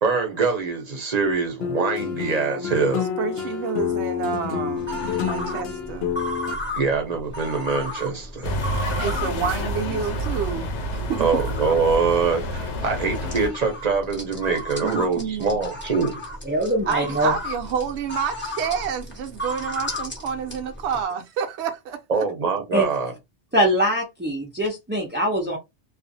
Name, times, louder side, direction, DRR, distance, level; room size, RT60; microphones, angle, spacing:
voice 1, 0.0-3.1 6.7-8.5 11.2-16.1 22.1-23.1, right 4 dB, 40° right, 0.7 m, -24 dB
sound 1, 1.6-6.5, left 8 dB, 65° left, 0.8 m, -28 dB
voice 2, 3.2-6.1 8.1-8.3 9.0-11.4 14.8-15.7 16.9-22.3, right 7 dB, 75° right, 0.9 m, -29 dB
sound 2, 4.8-21.0, left 1 dB, 10° left, 0.7 m, -35 dB
sound 3, 8.4-13.5, equal, 85° left, 0.9 m, -28 dB
voice 3, 16.5-17.3 22.7-22.9 23.5-25.6, right 1 dB, 15° right, 0.4 m, -22 dB
2.4 x 2.4 x 2.6 m
omnidirectional pair, 1.2 m